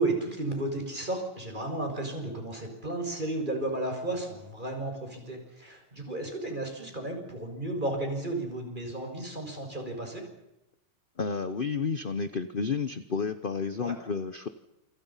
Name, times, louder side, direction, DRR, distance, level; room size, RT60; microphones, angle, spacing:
voice 1, 0.0-10.2 13.8-13.9, right 2 dB, 20° right, 3 dB, 6.4 m, -33 dB
voice 2, 11.2-14.5, left 5 dB, 40° left, 12 dB, 0.8 m, -31 dB
28.5 x 26.0 x 5.8 m, 0.92 s
omnidirectional pair, 2.3 m